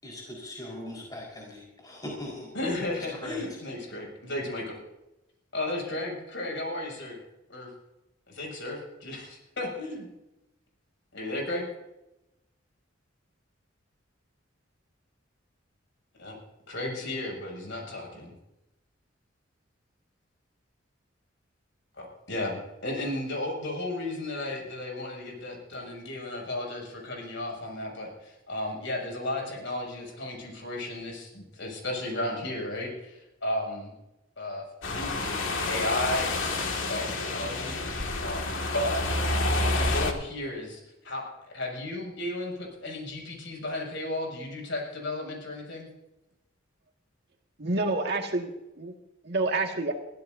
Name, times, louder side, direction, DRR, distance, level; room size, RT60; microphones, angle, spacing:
voice 1, 0.0-2.5 3.1-3.4, left 1 dB, 20° left, -2 dB, 4.6 m, -40 dB
voice 2, 2.5-4.8 5.5-7.2 7.5-7.7 8.3-10.1 11.1-11.6 16.2-16.4 16.7-18.3 22.0-33.9 34.4-39.2 39.7-41.2 41.5-45.9, left 1 dB, 70° left, 0 dB, 6.6 m, -34 dB
sound 1, 34.8-40.1, left 2 dB, 85° left, 2.1 m, -29 dB
voice 3, 47.6-48.5 48.8-48.9 49.2-49.9, right 2 dB, 60° right, 3 dB, 1.9 m, -28 dB
22.5 x 16.0 x 2.7 m, 0.93 s
head